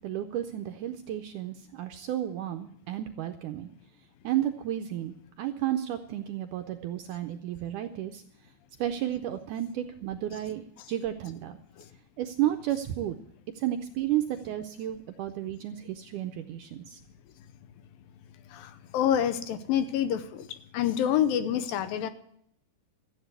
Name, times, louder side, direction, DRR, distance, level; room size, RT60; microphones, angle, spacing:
voice 1, 0.0-3.7 4.2-8.2 8.8-11.6 12.2-13.2 13.6-17.0, right 12 dB, 80° right, 7 dB, 1.8 m, -32 dB
voice 2, 18.5-20.5 20.7-22.1, left 10 dB, 80° left, 11 dB, 2.5 m, -27 dB
14.0 x 8.0 x 8.0 m, 0.68 s
omnidirectional pair, 4.2 m